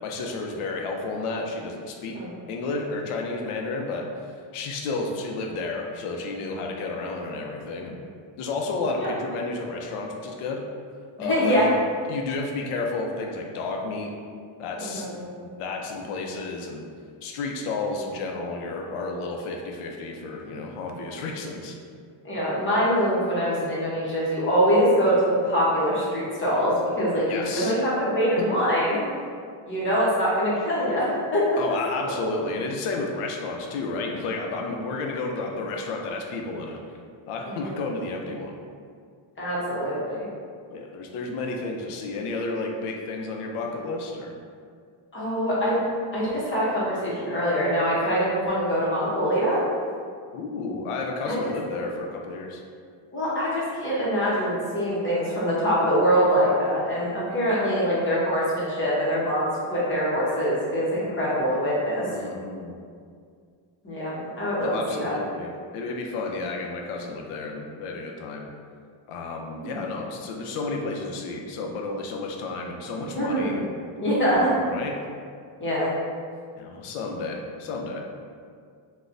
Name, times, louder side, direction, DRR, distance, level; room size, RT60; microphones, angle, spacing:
voice 1, 0.0-2.2 2.5-8.0 8.4-10.6 11.2-11.7 12.1-14.1 14.6-16.8 17.2-21.8 27.3-27.7 28.4-28.5 31.6-36.8 37.3-38.6 40.7-44.3 50.3-52.6 62.1-62.7 64.6-68.5 69.1-73.8 74.2-75.0 76.6-78.0, left 3 dB, 85° left, 1 dB, 0.6 m, -31 dB
voice 2, 11.3-11.7 14.8-15.3 22.2-29.0 29.6-31.6 37.5-37.9 39.4-40.3 45.1-45.8 46.1-49.6 51.2-51.5 53.1-62.1 63.8-65.2 69.6-69.8 73.1-73.6 74.0-74.5 75.6-75.9, equal, 25° left, -8 dB, 0.8 m, -24 dB
4.0 x 2.2 x 2.5 m, 2.2 s
cardioid pair, 165°, 49 cm